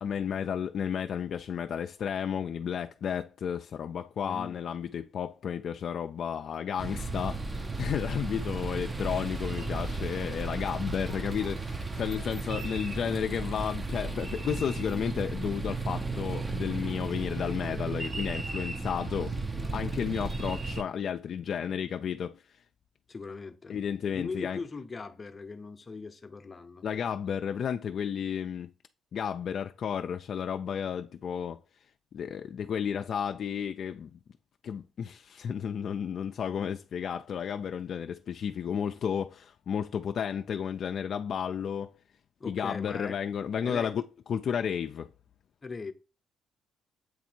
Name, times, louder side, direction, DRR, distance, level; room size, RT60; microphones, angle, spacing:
voice 1, 0.0-19.3 19.7-22.4 23.7-24.6 26.8-28.7 29.1-31.6 32.1-34.2 34.6-41.9 42.5-44.0 44.3-45.1, left 8 dB, 60° left, 0.3 m, -32 dB
voice 2, 4.2-4.6 23.1-23.8 24.1-26.9 42.4-43.2 43.6-43.9 45.6-45.9, left 4 dB, 30° left, 0.7 m, -39 dB
sound 1, 6.8-20.8, right 3 dB, 25° right, 0.7 m, -34 dB
8.0 x 2.7 x 4.4 m
cardioid pair, 90°, 0 cm